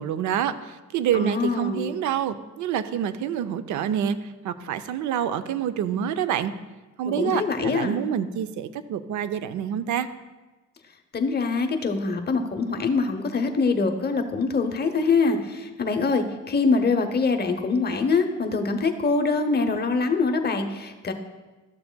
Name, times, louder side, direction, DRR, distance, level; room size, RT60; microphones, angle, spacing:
voice 1, 0.0-4.2 4.4-6.5 7.0-10.1, right 9 dB, 75° right, 12 dB, 0.5 m, -27 dB
voice 2, 1.1-1.9 7.2-8.0 11.1-21.1, left 4 dB, 35° left, 6 dB, 0.8 m, -24 dB
12.5 x 6.8 x 2.2 m, 1.2 s
cardioid pair, 90°, 30 cm